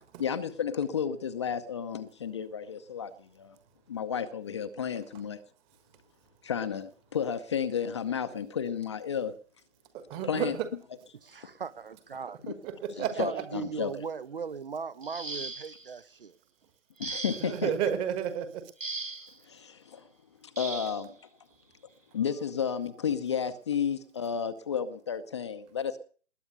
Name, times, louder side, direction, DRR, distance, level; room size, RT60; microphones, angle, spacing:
voice 1, 0.2-3.6 3.9-5.4 6.4-9.4 10.2-10.5 12.4-12.5 13.0-13.9 17.0-17.7 19.5-20.1 20.4-21.1 22.1-26.0, left 7 dB, 25° left, 0.7 m, -32 dB
voice 2, 10.1-10.6 12.6-13.4 17.4-18.7, right 9 dB, 15° right, 1.4 m, -31 dB
voice 3, 11.2-12.4 13.2-16.4, right 6 dB, 45° right, 0.7 m, -38 dB
sound 1, 15.0-15.9 17.0-17.7 18.8-19.4 20.6-21.0 22.2-22.4 22.9-23.1, right 3 dB, 85° right, 1.7 m, -38 dB
20.5 x 9.6 x 6.7 m
figure-of-eight pair, 140°, 38 cm